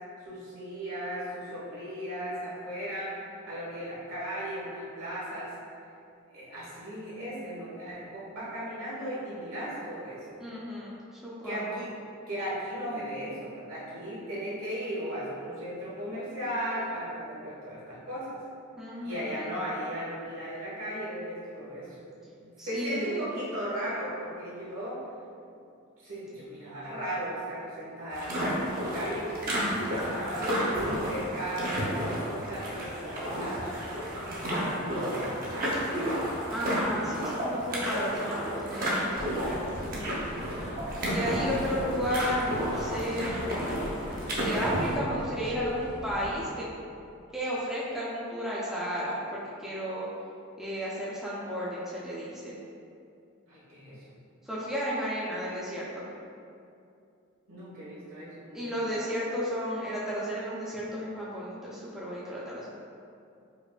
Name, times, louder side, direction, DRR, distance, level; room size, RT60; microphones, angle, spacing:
voice 1, 0.2-3.2 3.4-5.5 6.3-10.2 11.4-11.9 12.3-18.4 19.0-21.9 22.4-25.0 26.0-29.3 29.9-33.7 34.2-35.7 41.2-41.6 53.5-54.0 57.5-58.6, equal, 75° right, -9 dB, 1.5 m, -36 dB
voice 2, 10.4-11.8 18.8-19.5 22.6-23.2 36.5-39.6 41.1-43.6 43.9-46.7 47.3-50.1 50.6-52.6 54.4-56.0 58.5-62.7, equal, ahead, -8 dB, 0.4 m, -33 dB
sound 1, 28.1-45.0, equal, 45° right, 0.7 m, -31 dB
sound 2, 39.1-46.4, equal, 65° left, 0.9 m, -41 dB
4.7 x 2.5 x 2.3 m, 2.5 s
head